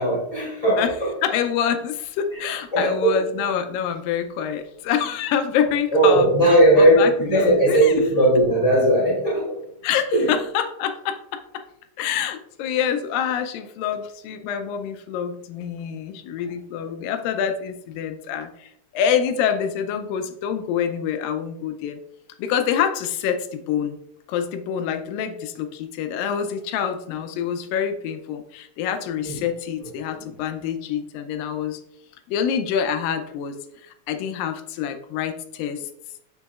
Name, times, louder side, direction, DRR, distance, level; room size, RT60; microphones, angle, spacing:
voice 1, 0.0-1.1 2.3-2.4 2.7-3.2 5.9-9.6 10.1-10.4 29.2-29.4 30.1-30.3, right 1 dB, 10° right, -6 dB, 2.0 m, -18 dB
voice 2, 1.2-6.3 6.8-7.9 9.8-11.6 12.0-22.0 22.4-24.0 24.3-31.8 32.3-35.9, left 8 dB, 85° left, 7 dB, 2.3 m, -26 dB
6.8 x 6.4 x 2.4 m, 0.75 s
omnidirectional pair, 3.9 m